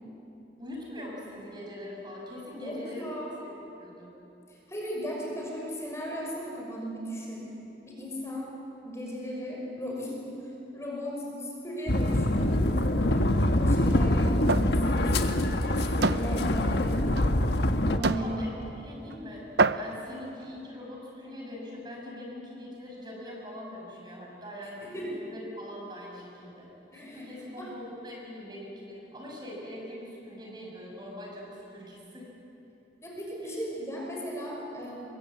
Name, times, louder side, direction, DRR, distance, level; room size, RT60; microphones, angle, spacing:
voice 1, 0.6-3.5 3.8-4.1 18.0-18.5 18.8-26.7 26.9-32.3 33.4-33.6, left 1 dB, 25° right, -2 dB, 6.1 m, -42 dB
voice 2, 2.6-3.4 4.5-7.5 7.8-8.5 8.8-10.1 10.7-12.5 12.9-13.3 13.5-15.4 16.0-17.5 17.8-18.4 24.8-25.1 26.9-27.7 33.0-35.0, equal, 15° left, -3 dB, 6.0 m, -37 dB
sound 1, 11.9-18.0, left 1 dB, 75° left, 1.4 m, -25 dB
sound 2, 14.5-14.7 15.2-15.3 16.0-16.3 17.2-17.3 18.0-18.3 19.1-19.2 19.6-20.0, right 3 dB, 75° right, 0.7 m, -26 dB
27.5 x 23.0 x 8.7 m, 3.0 s
head